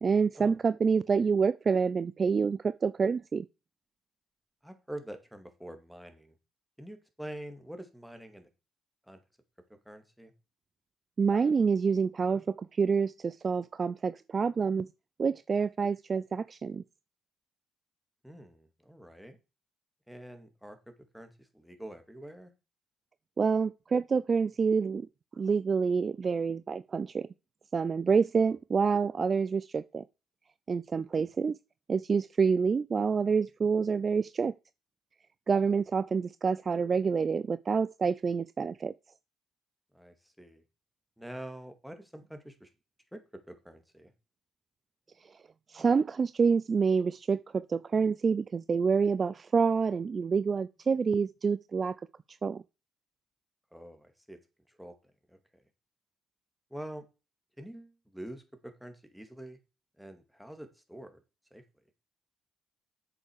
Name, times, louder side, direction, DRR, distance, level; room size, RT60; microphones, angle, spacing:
voice 1, 0.0-3.4 11.2-14.9 15.2-16.8 23.4-25.0 25.4-27.3 27.7-30.0 30.7-31.5 31.9-34.5 35.5-38.9 45.7-51.9 52.4-52.6, right 5 dB, 45° right, 0.5 m, -27 dB
voice 2, 4.6-6.4 6.8-8.5 9.1-9.2 9.8-10.3 18.2-19.4 20.1-22.5 28.5-28.6 31.1-31.3 39.9-40.6 41.2-42.7 43.1-43.2 43.5-44.1 53.7-54.4 54.7-54.9 55.3-55.6 56.7-57.0 57.6-59.6 60.0-61.2 61.5-61.6, right 1 dB, 5° right, 3.0 m, -46 dB
8.2 x 7.0 x 6.6 m
hypercardioid pair, 55°, 0 cm